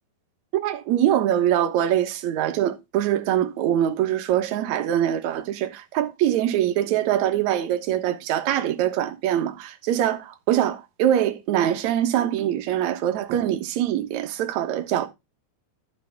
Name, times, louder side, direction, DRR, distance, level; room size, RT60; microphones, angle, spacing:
voice 1, 0.5-15.1, right 11 dB, 65° right, 2.2 m, -23 dB
12.5 x 6.7 x 3.6 m
omnidirectional pair, 4.2 m